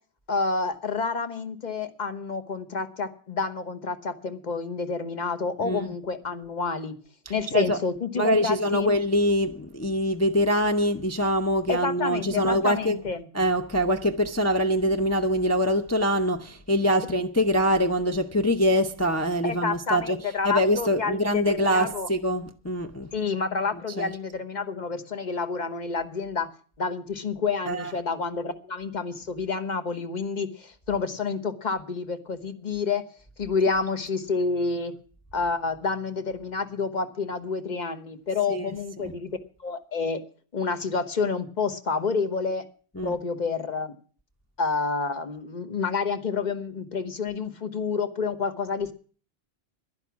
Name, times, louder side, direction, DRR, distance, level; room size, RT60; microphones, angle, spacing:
voice 1, 0.3-6.9 7.3-8.9 11.7-13.2 19.4-22.1 23.1-26.5 26.8-33.0 33.4-34.9 35.3-39.3 39.6-40.2 40.5-42.6 43.0-43.9 44.6-48.9, left 4 dB, 40° left, 1.1 m, -29 dB
voice 2, 8.2-13.0 13.3-23.1 24.0-24.1 27.7-27.9 33.7-33.8 38.5-38.7 39.0-39.2 43.0-43.1, equal, 20° left, 0.4 m, -24 dB
11.0 x 10.5 x 7.2 m
omnidirectional pair, 1.3 m